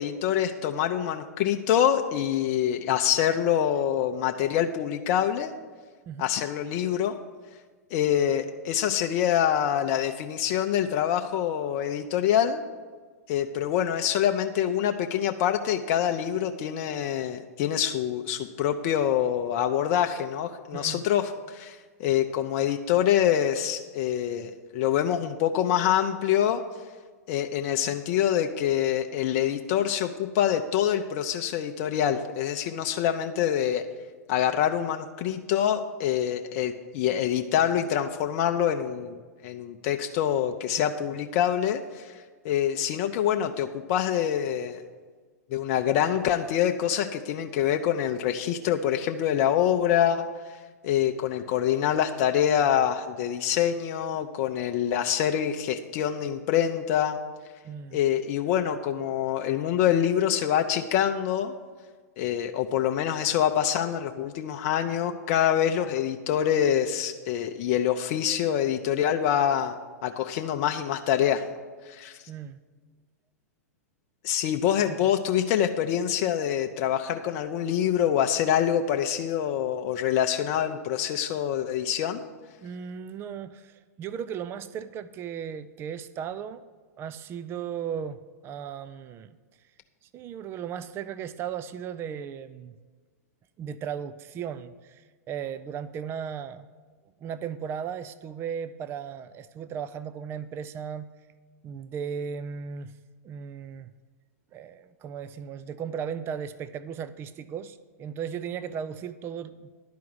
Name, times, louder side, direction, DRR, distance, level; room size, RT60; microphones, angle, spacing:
voice 1, 0.0-5.5 6.2-7.2 7.9-12.6 13.3-26.6 27.3-33.8 34.3-42.2 42.4-44.8 45.5-50.2 50.8-57.2 57.9-61.5 62.2-69.7 70.0-71.4 71.9-72.2 74.2-82.3, left 10 dB, 45° left, 5 dB, 0.6 m, -25 dB
voice 2, 57.6-58.0 72.3-72.6 74.9-75.1 82.6-86.7 87.0-89.4 90.0-92.7 93.6-96.7 97.2-101.1 101.6-103.0 103.2-103.9 104.5-109.7, right 8 dB, 25° right, 15 dB, 0.4 m, -36 dB
11.5 x 4.7 x 7.8 m, 1.5 s
hypercardioid pair, 110°, 9 cm